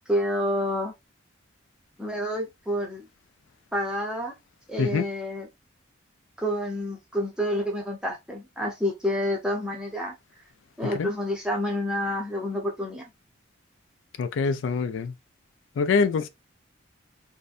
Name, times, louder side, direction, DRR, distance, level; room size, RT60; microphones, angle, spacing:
voice 1, 0.1-0.9 2.0-3.1 3.7-4.3 4.7-5.5 6.4-10.1 10.8-13.1, equal, 5° right, 0.6 m, -28 dB
voice 2, 14.2-15.1 15.8-16.3, left 5 dB, 70° left, 0.3 m, -24 dB
2.6 x 2.1 x 2.4 m
head